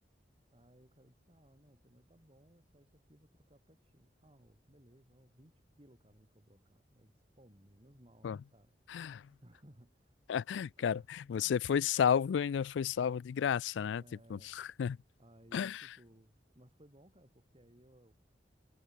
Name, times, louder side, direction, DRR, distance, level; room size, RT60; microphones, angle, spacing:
voice 1, 0.5-10.2 10.8-11.2 11.4-11.6 14.0-14.6 15.2-18.1, right 1 dB, 30° right, 4.3 m, -62 dB
voice 2, 8.9-9.2 10.3-14.0 14.3-15.0 15.5-15.8, left 7 dB, 85° left, 0.3 m, -32 dB
head